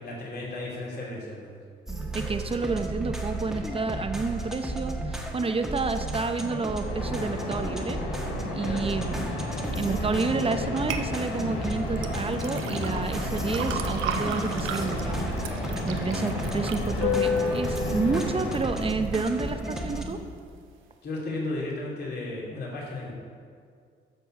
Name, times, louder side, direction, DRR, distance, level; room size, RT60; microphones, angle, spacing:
voice 1, 0.0-1.6 8.6-8.8 21.0-23.1, left 2 dB, 55° left, -5 dB, 3.0 m, -34 dB
sound 1, 1.9-20.0, right 1 dB, ahead, 1.4 m, -34 dB
voice 2, 2.1-8.0 8.5-9.3 9.8-20.2, right 4 dB, 30° right, 8 dB, 0.8 m, -30 dB
sound 2, 6.9-18.6, left 3 dB, 80° left, 1.7 m, -31 dB
sound 3, 10.9-11.1 12.0-18.1 18.5-19.1 19.5-19.6, right 7 dB, 90° right, 0.8 m, -36 dB
13.5 x 4.6 x 6.4 m, 2.2 s
cardioid pair, 90°, 20 cm